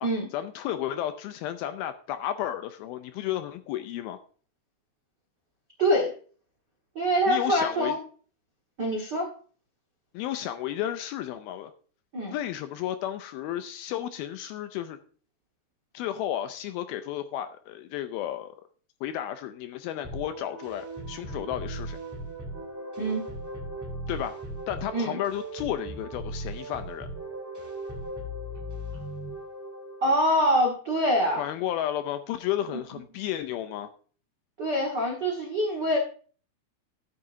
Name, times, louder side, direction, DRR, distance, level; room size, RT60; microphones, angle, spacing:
voice 1, 0.0-4.2 7.3-8.0 10.1-11.7 12.3-15.0 15.9-18.6 19.0-22.0 24.1-24.4 24.7-27.1 31.4-33.9, left 11 dB, 80° left, 2.3 m, -33 dB
voice 2, 5.8-6.1 6.9-8.0 8.8-9.3 12.1-12.3 23.0-23.3 24.9-25.2 30.0-31.4 34.6-36.0, equal, 80° right, 0.9 m, -25 dB
sound 1, 20.0-30.1, right 1 dB, 10° right, 1.1 m, -38 dB
13.5 x 8.5 x 2.6 m
omnidirectional pair, 4.8 m